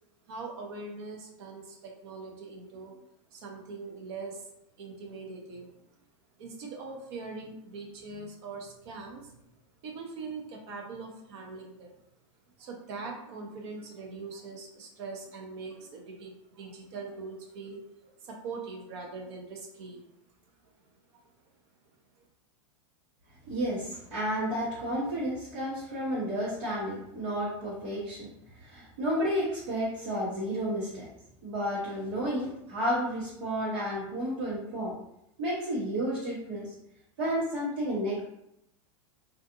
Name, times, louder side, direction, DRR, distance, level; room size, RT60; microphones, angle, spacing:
voice 1, 0.3-2.9 3.3-4.5 4.8-5.7 6.4-9.4 9.8-11.9 12.6-20.0 21.1-21.2, right 4 dB, 60° right, 1 dB, 0.8 m, -42 dB
voice 2, 23.5-28.3 28.6-31.1 31.4-34.9 35.4-36.7 37.2-38.2, equal, 85° right, -10 dB, 1.2 m, -31 dB
2.5 x 2.4 x 2.6 m, 0.81 s
supercardioid pair, 145°, 16 cm